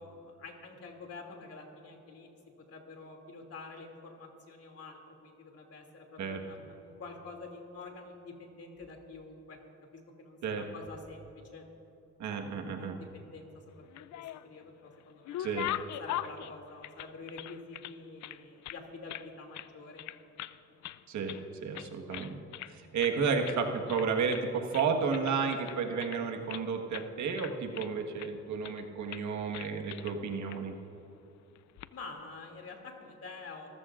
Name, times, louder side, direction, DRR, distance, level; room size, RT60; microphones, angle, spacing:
voice 1, 0.0-2.4 2.7-9.6 9.9-11.7 12.8-13.5 13.8-20.0 31.9-33.7, left 3 dB, 55° left, 2 dB, 2.7 m, -48 dB
voice 2, 12.2-13.0 15.4-15.7 21.1-21.3 21.6-22.4 22.7-30.7, right 5 dB, 70° right, 3 dB, 1.5 m, -32 dB
sound 1, 13.8-14.6 15.0-17.9 18.2-19.3 19.5-19.7 20.0-20.6 20.8-21.5 21.7-22.7 23.0-23.2 23.4-23.6 23.9-24.5 24.7-26.6 26.9-27.1 27.4-28.3 28.6-28.8 29.1-29.3 29.5-30.2 30.5-30.6 31.6-31.9, left 13 dB, 70° left, 0.5 m, -41 dB
26.0 x 14.5 x 2.5 m, 2.9 s
cardioid pair, 90°, 30 cm